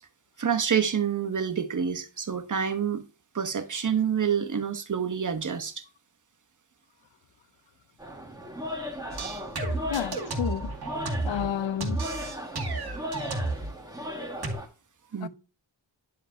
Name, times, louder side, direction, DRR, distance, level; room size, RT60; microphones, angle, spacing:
voice 1, 0.4-3.0 3.3-5.8 15.1-15.3, right 7 dB, 40° right, 1.1 m, -27 dB
sound 1, 8.0-14.7, equal, 10° right, 1.7 m, -37 dB
sound 2, 9.1-11.5 11.8-13.7 14.4-14.5, right 2 dB, 55° right, 2.2 m, -32 dB
voice 2, 9.9-10.7 11.2-12.1 15.2-15.3, left 10 dB, 75° left, 0.7 m, -31 dB
10.5 x 5.1 x 2.7 m
wide cardioid pair, 120°, 45 cm